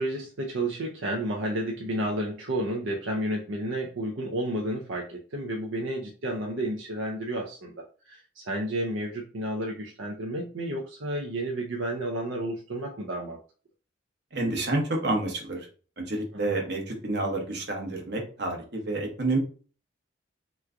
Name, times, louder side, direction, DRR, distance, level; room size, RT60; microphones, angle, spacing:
voice 1, 0.0-13.4 16.3-16.6, right 1 dB, 80° right, 0 dB, 0.6 m, -31 dB
voice 2, 14.3-15.7 16.0-19.4, right 2 dB, 55° right, 1 dB, 1.0 m, -29 dB
3.0 x 2.3 x 3.6 m, 0.39 s
head